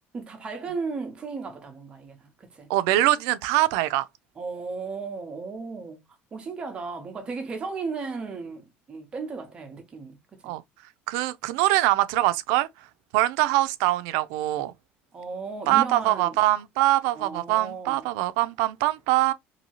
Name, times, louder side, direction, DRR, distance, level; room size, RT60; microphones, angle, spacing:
voice 1, 0.1-2.7 4.4-6.0 6.3-10.5 15.1-16.4 17.1-18.1, right 4 dB, 20° right, 0.7 m, -35 dB
voice 2, 2.7-4.1 10.4-10.6 11.1-12.7 13.1-14.7 15.7-19.3, right 16 dB, 90° right, 0.3 m, -23 dB
2.7 x 2.7 x 2.8 m
cardioid pair, 170°, 5 cm